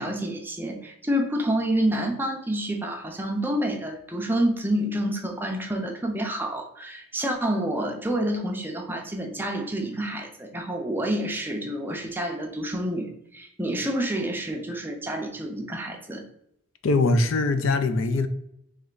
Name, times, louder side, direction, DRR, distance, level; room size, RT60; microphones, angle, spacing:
voice 1, 0.0-16.2, right 1 dB, 10° right, 0.5 m, -28 dB
voice 2, 16.8-18.3, left 3 dB, 80° left, 0.5 m, -22 dB
3.3 x 3.1 x 3.8 m
head